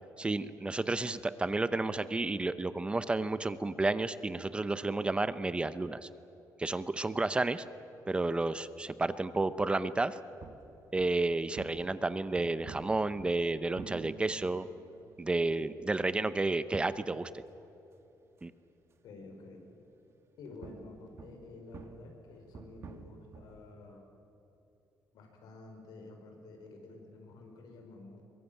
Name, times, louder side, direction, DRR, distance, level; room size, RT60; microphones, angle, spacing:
voice 1, 0.2-6.1 6.6-7.6 8.1-10.2 10.9-14.7 15.2-17.3 18.4-18.5, right 2 dB, 15° right, 13 dB, 0.7 m, -31 dB
sound 1, 10.4-19.3 20.1-23.7, right 6 dB, 40° right, 1.3 m, -51 dB
voice 2, 19.0-19.6 20.4-24.1 25.1-28.2, left 3 dB, 90° left, 3 dB, 5.3 m, -50 dB
23.0 x 21.5 x 9.0 m, 3.0 s
cardioid pair, 155°, 7 cm